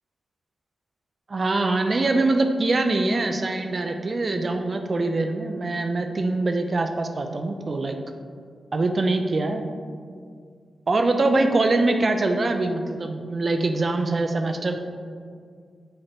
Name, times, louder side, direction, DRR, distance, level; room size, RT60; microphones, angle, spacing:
voice 1, 1.3-8.0 8.7-9.6 10.9-14.8, right 2 dB, 50° right, 5 dB, 0.3 m, -23 dB
4.8 x 2.1 x 4.4 m, 2.1 s
supercardioid pair, 40°, 0 cm